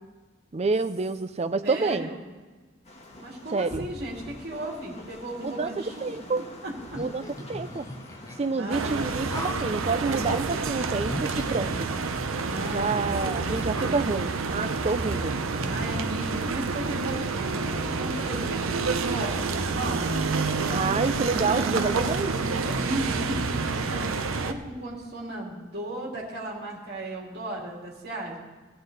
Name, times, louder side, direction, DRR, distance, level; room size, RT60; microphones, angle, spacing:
voice 1, 0.5-2.1 3.5-3.9 5.4-6.4 7.0-7.2 7.5-7.9 8.4-11.9 12.7-15.4 18.3-18.4 20.7-22.3, right 4 dB, 30° right, 11 dB, 0.5 m, -28 dB
voice 2, 1.6-2.2 3.2-6.2 6.6-7.0 8.6-9.0 12.4-13.5 13.7-14.2 15.6-20.1 21.4-22.2 22.7-28.4, right 1 dB, 55° right, -2 dB, 2.9 m, -36 dB
sound 1, 2.8-10.5, left 1 dB, 35° left, 1.6 m, -45 dB
sound 2, 6.9-8.4 9.3-9.7 10.2-10.4 11.0-12.3 12.8-12.9 13.6-14.5, left 1 dB, 15° left, 0.7 m, -38 dB
sound 3, 8.7-24.5, right 4 dB, 90° right, 0.7 m, -28 dB
16.5 x 9.7 x 4.0 m, 1.3 s
head